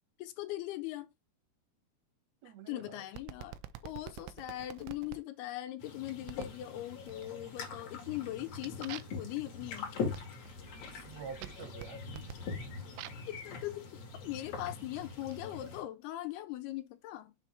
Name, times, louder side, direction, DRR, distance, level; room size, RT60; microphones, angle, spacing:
voice 1, 0.2-1.1 2.7-10.0 10.9-11.1 12.8-13.0 13.3-13.9 14.1-17.3, left 15 dB, 85° left, 2.7 m, -40 dB
voice 2, 2.4-3.0 3.4-3.5 11.0-12.4, right 7 dB, 65° right, 1.8 m, -47 dB
sound 1, 3.2-5.2 6.3-6.6 7.1-7.6 8.0-13.3 14.1-15.4, right 13 dB, 90° right, 2.7 m, -49 dB
sound 2, 5.8-15.8, left 4 dB, 55° left, 2.6 m, -42 dB
6.8 x 3.6 x 4.7 m
omnidirectional pair, 4.6 m